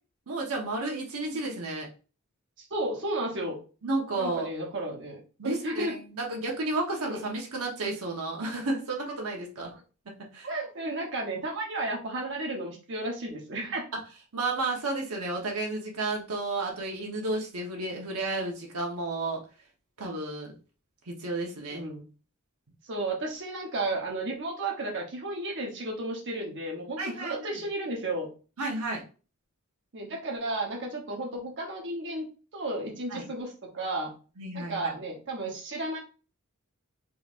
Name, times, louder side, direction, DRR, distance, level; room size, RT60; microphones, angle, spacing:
voice 1, 0.3-1.9 3.8-4.5 5.4-9.7 10.0-10.5 13.9-14.0 14.3-19.4 20.0-20.5 21.1-21.8 27.0-27.6 28.6-29.0 33.1-33.2 34.4-34.9, right 2 dB, 85° right, 0 dB, 1.0 m, -32 dB
voice 2, 2.7-3.5 4.2-5.9 7.1-7.2 10.4-13.8 21.7-22.0 22.8-28.3 29.9-32.3 32.5-34.1 34.5-36.0, right 2 dB, 55° right, -1 dB, 0.9 m, -33 dB
3.7 x 3.1 x 2.5 m, 0.35 s
head